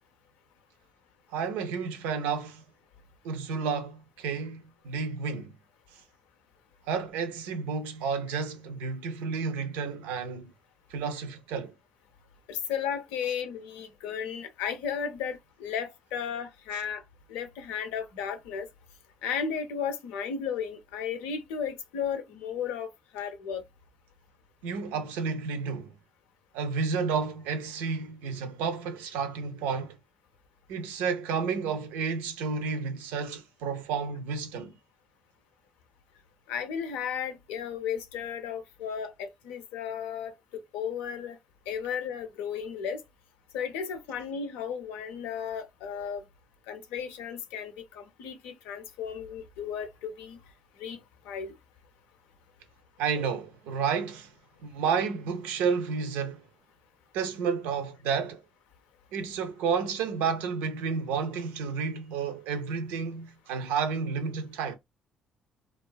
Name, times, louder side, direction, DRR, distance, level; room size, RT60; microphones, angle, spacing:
voice 1, 1.3-2.6 3.2-5.6 6.9-10.5 10.9-11.7 24.6-25.9 26.5-30.0 30.7-34.7 53.0-54.3 54.6-56.4 57.1-58.4 59.1-64.8, right 5 dB, 85° right, 0.5 m, -31 dB
voice 2, 12.5-17.0 17.3-18.7 19.2-23.6 36.5-40.3 40.7-41.4 41.7-43.0 43.5-46.2 46.7-50.4 50.8-51.0 51.2-51.5, left 7 dB, 90° left, 0.5 m, -34 dB
2.4 x 2.3 x 2.2 m
supercardioid pair, 65°, 3 cm